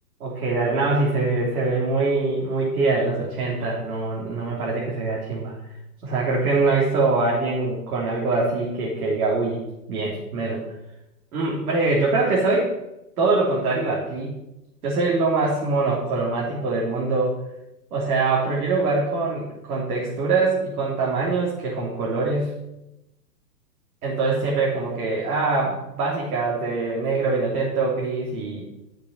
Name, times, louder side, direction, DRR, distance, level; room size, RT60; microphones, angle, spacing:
voice 1, 0.2-5.5 6.0-9.6 9.9-10.6 11.3-12.7 13.2-14.4 14.8-17.3 17.9-22.5 24.0-28.6, right 3 dB, 65° right, -5 dB, 3.3 m, -23 dB
11.5 x 6.6 x 5.6 m, 0.92 s
hypercardioid pair, 135°, 48 cm